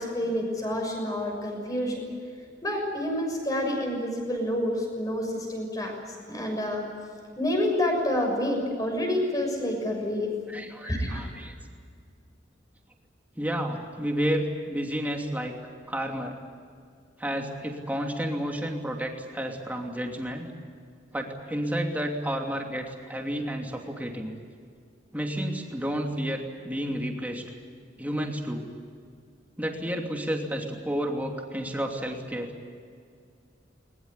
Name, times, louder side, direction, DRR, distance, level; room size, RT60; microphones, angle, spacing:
voice 1, 0.0-2.0 2.6-5.9 6.3-6.8 7.4-10.3 10.8-11.2, left 1 dB, 20° left, 2 dB, 6.5 m, -28 dB
voice 2, 10.5-11.6 13.4-15.6 15.9-16.4 17.2-20.5 21.1-24.3 25.1-27.4 28.0-28.6 29.6-32.5, equal, 10° right, 2 dB, 2.8 m, -31 dB
21.5 x 21.0 x 9.9 m, 2.2 s
head